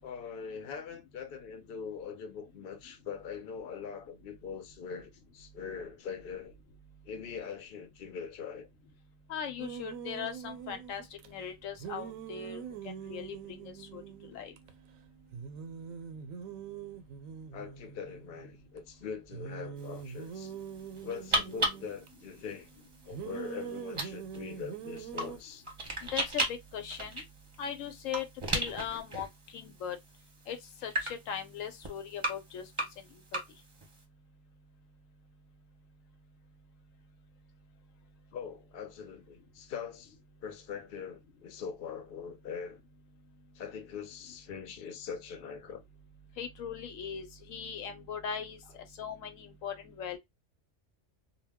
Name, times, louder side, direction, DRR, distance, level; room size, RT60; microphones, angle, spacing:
voice 1, 0.0-6.5 7.0-8.7 17.5-20.5 21.0-22.7 23.1-25.6 38.3-40.2 40.4-42.8 43.5-45.8, left 6 dB, 55° left, 0.7 m, -42 dB
voice 2, 9.3-14.0 14.3-14.5 26.0-27.2 27.6-28.3 28.5-29.3 29.5-30.0 30.5-32.7 46.4-48.6 49.0-50.2, left 8 dB, 85° left, 1.0 m, -39 dB
sound 1, 9.6-11.3 11.8-14.7 15.0-15.1 15.3-18.8 19.3-22.1 23.1-25.4, right 7 dB, 85° right, 1.0 m, -43 dB
sound 2, 19.8-34.0, right 1 dB, 30° right, 0.7 m, -38 dB
2.3 x 2.1 x 3.3 m
omnidirectional pair, 1.4 m